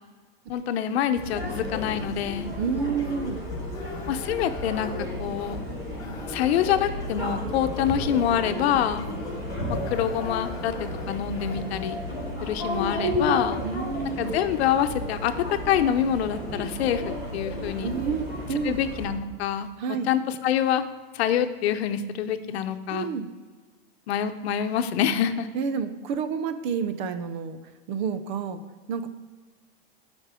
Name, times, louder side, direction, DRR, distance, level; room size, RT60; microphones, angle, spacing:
voice 1, 0.5-2.5 4.1-4.9 5.2-5.6 6.3-9.1 9.7-12.0 12.4-13.6 14.2-17.9 18.6-19.7 20.0-20.8 21.1-23.1 24.1-25.5, left 9 dB, 75° left, 9 dB, 0.8 m, -26 dB
sound 1, 1.1-19.1, equal, 10° right, 2.9 m, -33 dB
sound 2, 1.3-11.9, left 4 dB, 10° left, 0.7 m, -41 dB
voice 2, 2.6-3.4 13.6-14.4 17.8-18.8 19.8-20.1 22.9-23.3 25.5-27.6 27.9-28.6 28.9-29.1, right 6 dB, 50° right, 11 dB, 0.7 m, -29 dB
12.0 x 5.3 x 5.0 m, 1.4 s
supercardioid pair, 170°, 31 cm